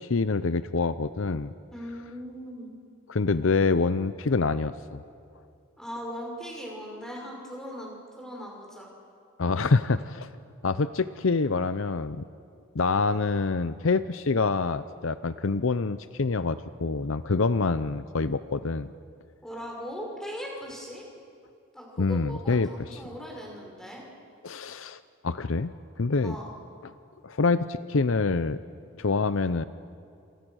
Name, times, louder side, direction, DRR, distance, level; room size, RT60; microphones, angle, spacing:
voice 1, 0.0-1.5 3.1-5.0 9.4-10.3 10.6-12.3 12.7-18.9 22.0-23.0 24.4-25.7 26.0-26.4 26.8-26.9 27.2-28.6 29.0-29.6, left 4 dB, 65° left, 13 dB, 0.6 m, -26 dB
voice 2, 1.7-2.7 5.8-8.9 19.4-21.1 21.7-24.0 26.2-26.5, equal, ahead, -1 dB, 5.6 m, -39 dB
28.0 x 27.5 x 6.4 m, 2.5 s
head